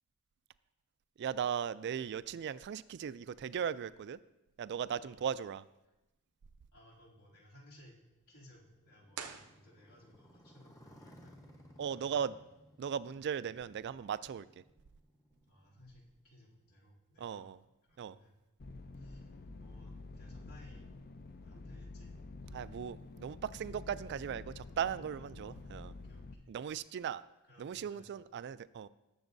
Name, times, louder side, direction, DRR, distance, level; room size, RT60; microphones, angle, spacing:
voice 1, 1.2-4.2 4.6-5.6 11.8-12.3 12.8-14.5 17.2-17.6 18.0-18.2 22.5-25.9 26.5-27.2 27.6-28.9, right 8 dB, 50° right, 16 dB, 0.3 m, -38 dB
voice 2, 4.9-5.3 5.8-5.9 6.7-8.0 8.3-11.3 11.9-12.5 13.1-13.2 15.4-17.5 17.9-18.3 18.9-20.8 21.4-22.1 22.6-22.7 25.1-26.5 27.4-28.1, left 1 dB, 75° left, -5 dB, 2.9 m, -61 dB
Motorcycle, 7.0-16.7, equal, 15° left, 1.0 m, -61 dB
sound 1, 9.1-10.3, right 7 dB, 85° right, 0.7 m, -47 dB
sound 2, 18.6-26.3, left 3 dB, 40° left, 0.5 m, -49 dB
19.0 x 7.0 x 2.6 m, 1.0 s
head